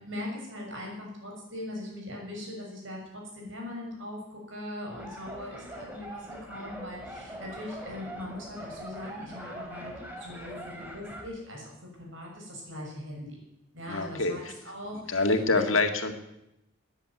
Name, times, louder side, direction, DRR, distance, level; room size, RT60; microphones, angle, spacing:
voice 1, 0.0-11.7 12.0-13.4 13.7-15.7, left 1 dB, 65° right, -1 dB, 6.5 m, -40 dB
sound 1, 4.9-11.2, right 1 dB, 10° right, 3.3 m, -42 dB
voice 2, 13.9-14.5 15.1-16.1, left 3 dB, 70° left, 5 dB, 2.0 m, -26 dB
14.0 x 10.0 x 9.6 m, 0.85 s
head